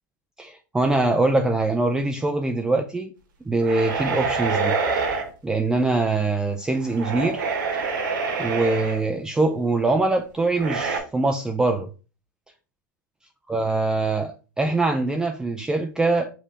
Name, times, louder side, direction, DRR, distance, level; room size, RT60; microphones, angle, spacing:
voice 1, 0.4-3.1 3.5-5.2 5.4-7.4 7.7-7.8 8.4-11.9 13.5-16.3, right 2 dB, 5° right, 0.3 m, -23 dB
sound 1, 3.6-5.3 6.8-9.0 10.6-11.0, right 4 dB, 80° right, 1.6 m, -26 dB
5.2 x 2.7 x 3.4 m
hypercardioid pair, 130°, 11 cm